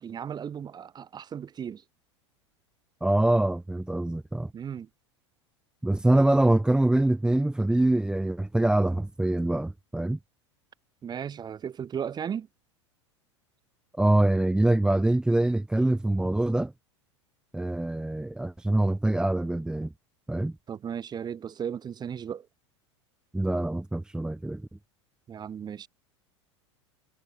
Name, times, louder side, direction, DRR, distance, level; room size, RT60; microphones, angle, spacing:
voice 1, 0.0-1.8 4.5-4.9 11.0-12.5 20.7-22.5 25.3-25.9, right 8 dB, 25° right, 6.9 m, -35 dB
voice 2, 3.0-4.5 5.8-10.2 14.0-16.7 17.5-19.9 20.3-20.6 23.3-24.7, right 1 dB, 5° right, 1.2 m, -24 dB
figure-of-eight pair, 85°, 15 cm